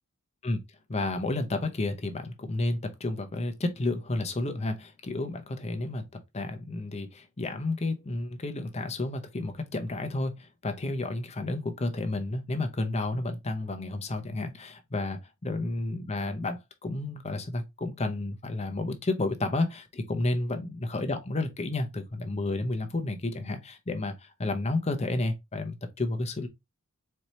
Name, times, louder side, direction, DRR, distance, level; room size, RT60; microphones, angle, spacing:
voice 1, 0.9-6.0 6.3-26.5, left 2 dB, 30° left, 0.7 m, -31 dB
4.3 x 2.8 x 3.1 m
head